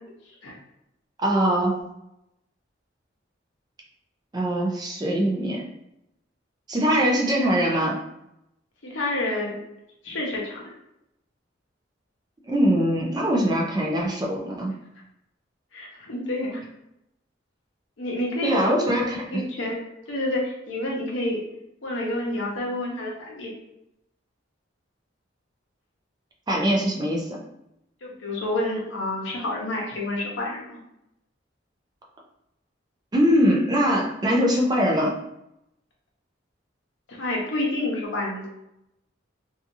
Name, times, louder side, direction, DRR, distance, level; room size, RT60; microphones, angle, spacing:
voice 1, 1.2-1.8 4.3-5.6 6.7-8.0 12.5-14.7 18.4-19.4 26.5-27.4 33.1-35.2, equal, 20° right, -1 dB, 0.4 m, -22 dB
voice 2, 8.8-9.6 10.0-10.6 15.7-16.6 18.0-18.7 19.3-19.8 20.1-21.4 21.8-23.5 28.0-30.8 37.1-38.5, left 1 dB, 75° left, -2 dB, 0.8 m, -28 dB
2.7 x 2.4 x 2.6 m, 0.83 s
head